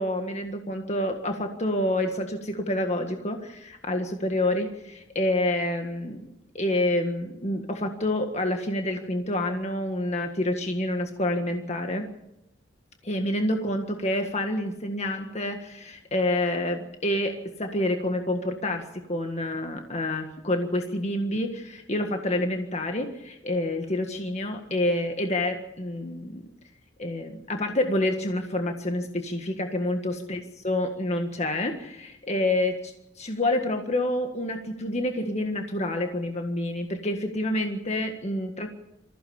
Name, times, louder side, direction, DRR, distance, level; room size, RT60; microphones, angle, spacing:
voice 1, 0.0-6.3 6.5-12.1 13.0-26.5 27.0-38.7, left 1 dB, 35° left, 4 dB, 1.7 m, -28 dB
25.5 x 15.5 x 7.2 m, 0.87 s
head